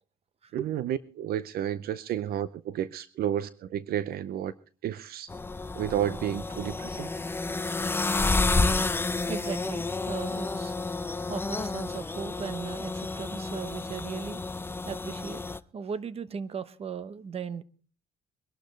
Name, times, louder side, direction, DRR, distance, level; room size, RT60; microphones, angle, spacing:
voice 1, 0.5-4.5 4.8-5.3 5.8-7.1, right 11 dB, 65° right, 0.7 m, -31 dB
sound 1, 5.3-15.6, left 3 dB, 15° left, 0.6 m, -30 dB
voice 2, 9.3-10.7 11.3-14.4 14.8-15.4 15.7-17.6, right 6 dB, 35° right, 1.0 m, -37 dB
23.5 x 12.0 x 3.2 m
cardioid pair, 110°, 17 cm